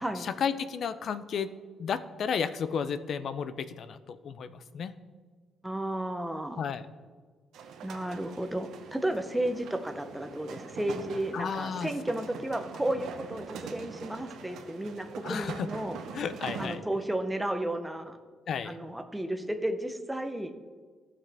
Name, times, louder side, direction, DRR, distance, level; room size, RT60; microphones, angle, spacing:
voice 1, 0.0-1.5 1.8-4.9 6.6-6.8 11.3-11.9 15.2-15.7 16.1-16.8 18.5-18.8, left 7 dB, 50° left, 13 dB, 0.4 m, -33 dB
voice 2, 5.6-6.6 7.8-16.0 16.6-18.2 18.7-20.5, right 1 dB, 5° right, 8 dB, 0.5 m, -33 dB
sound 1, 7.5-16.8, right 6 dB, 75° right, 0.9 m, -43 dB
15.0 x 6.0 x 3.4 m, 1.5 s
cardioid pair, 165°, 0 cm